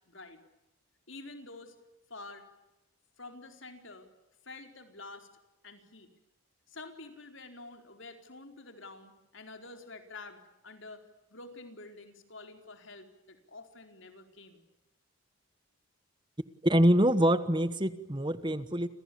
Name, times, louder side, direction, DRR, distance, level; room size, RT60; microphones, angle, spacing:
voice 1, 0.1-0.4 1.1-1.8 2.1-2.5 3.2-4.1 4.4-5.3 5.6-6.1 6.7-11.0 11.3-14.7, left 3 dB, 60° left, 6 dB, 4.5 m, -48 dB
voice 2, 16.6-18.9, equal, 20° right, 13 dB, 1.2 m, -25 dB
30.0 x 27.5 x 7.0 m, 0.95 s
head